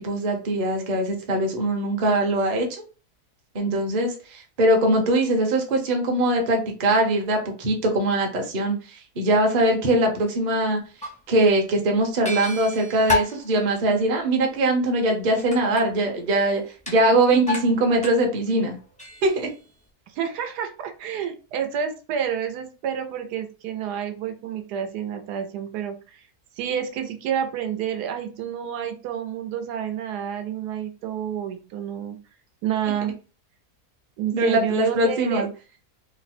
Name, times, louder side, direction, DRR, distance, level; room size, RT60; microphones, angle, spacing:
voice 1, 0.0-2.8 3.5-10.8 11.3-18.8 19.2-19.5 34.3-35.5, right 1 dB, 40° right, 2 dB, 0.6 m, -22 dB
sound 1, 10.2-10.3 10.9-11.2 11.6-11.7 12.3-13.8 15.4-16.2 16.8-17.1 17.5-18.2 18.6-19.7, left 3 dB, 10° left, 0.4 m, -30 dB
voice 2, 20.1-25.9 26.6-32.2 32.6-33.1 34.2-35.5, right 9 dB, 85° right, 7 dB, 1.2 m, -29 dB
3.2 x 2.1 x 4.1 m, 0.35 s
omnidirectional pair, 1.7 m